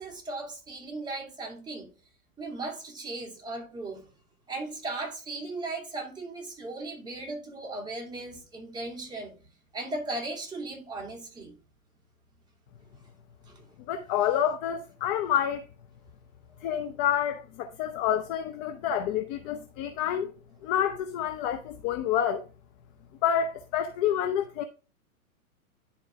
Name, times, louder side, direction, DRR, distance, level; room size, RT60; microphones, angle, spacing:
voice 1, 0.0-1.9 2.4-4.1 4.5-9.4 9.7-11.5 13.5-13.6, right 2 dB, 10° right, 2.4 m, -37 dB
voice 2, 13.9-15.6 16.6-20.3 20.6-22.4 23.2-24.6, left 9 dB, 30° left, 0.6 m, -28 dB
10.5 x 4.4 x 3.4 m
hypercardioid pair, 110°, 43 cm